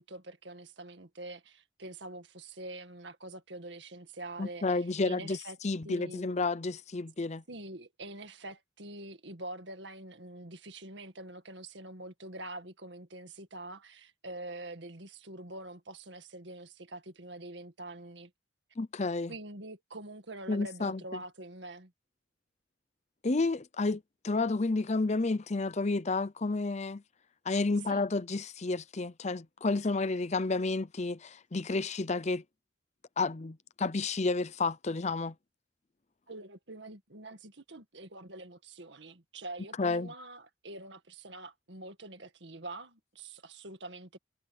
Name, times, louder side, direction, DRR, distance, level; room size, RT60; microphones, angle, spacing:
voice 1, 0.0-5.6 5.8-6.4 7.5-18.3 19.3-21.9 27.9-28.1 36.3-44.2, right 2 dB, 70° right, 2.0 m, -45 dB
voice 2, 4.4-5.4 5.6-7.4 18.8-19.3 20.5-21.0 23.2-27.0 27.5-32.4 33.2-35.3 39.8-40.1, left 3 dB, 35° left, 0.7 m, -31 dB
head